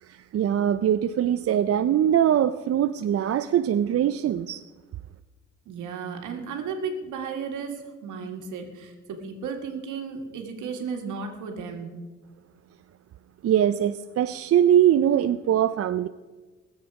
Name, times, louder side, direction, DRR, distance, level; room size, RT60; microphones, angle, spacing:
voice 1, 0.0-4.6 13.4-16.1, right 10 dB, 50° right, 10 dB, 0.5 m, -22 dB
voice 2, 5.7-11.9, right 5 dB, 85° right, 3 dB, 2.1 m, -34 dB
21.0 x 7.4 x 4.8 m, 1.3 s
cardioid pair, 90°, 30 cm